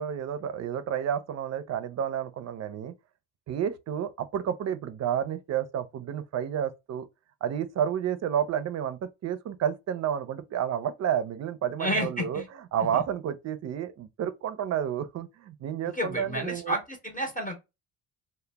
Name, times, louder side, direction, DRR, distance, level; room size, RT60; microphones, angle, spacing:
voice 1, 0.0-2.9 3.5-7.1 7.4-12.4 12.7-16.7, right 9 dB, 50° right, 0.5 m, -30 dB
voice 2, 11.8-12.5 12.9-13.0 15.9-17.6, equal, 25° left, 0.7 m, -31 dB
2.1 x 2.0 x 3.3 m
cardioid pair, 90°, 36 cm